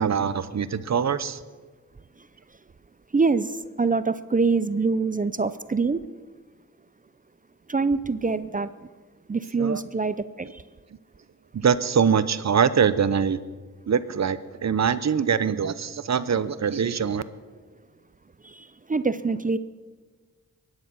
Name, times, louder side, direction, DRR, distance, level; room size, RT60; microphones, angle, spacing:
voice 1, 0.0-1.4 9.6-9.8 11.5-13.4 13.9-17.2, right 7 dB, 55° right, 15 dB, 0.8 m, -23 dB
voice 2, 3.1-3.5 3.8-6.0 7.7-8.7 9.3-10.6 18.6-19.6, right 4 dB, 25° right, 14 dB, 0.6 m, -24 dB
22.5 x 9.7 x 6.2 m, 1.4 s
cardioid pair, 65°, 32 cm